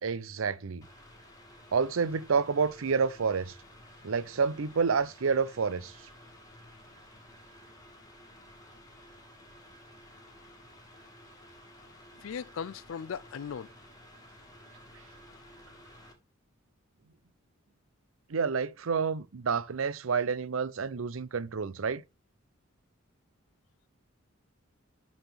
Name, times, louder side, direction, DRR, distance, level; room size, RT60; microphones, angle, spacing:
voice 1, 0.0-0.9 1.7-3.6 4.0-6.0 18.3-22.0, right 5 dB, 75° right, 0.6 m, -29 dB
Mechanical fan, 0.8-16.1, left 1 dB, 20° left, 1.9 m, -53 dB
voice 2, 12.2-13.7, left 7 dB, 70° left, 0.4 m, -38 dB
11.5 x 4.0 x 3.4 m
head